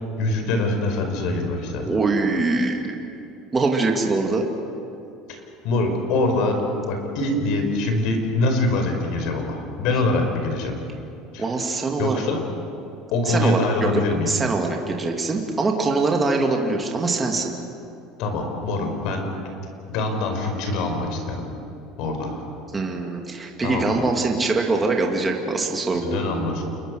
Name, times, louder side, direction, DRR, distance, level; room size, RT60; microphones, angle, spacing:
voice 1, 0.2-1.9 5.6-10.8 11.3-11.4 12.0-12.4 13.1-14.3 18.2-19.3 19.9-21.5 22.0-22.4 23.6-24.0 26.0-26.6, left 2 dB, 60° left, 4 dB, 5.2 m, -24 dB
voice 2, 1.9-3.0 3.5-4.5 11.4-12.2 13.3-17.5 22.7-26.2, right 3 dB, 15° right, 1 dB, 2.3 m, -23 dB
28.5 x 22.0 x 6.4 m, 2.7 s
cardioid pair, 150°, 0 cm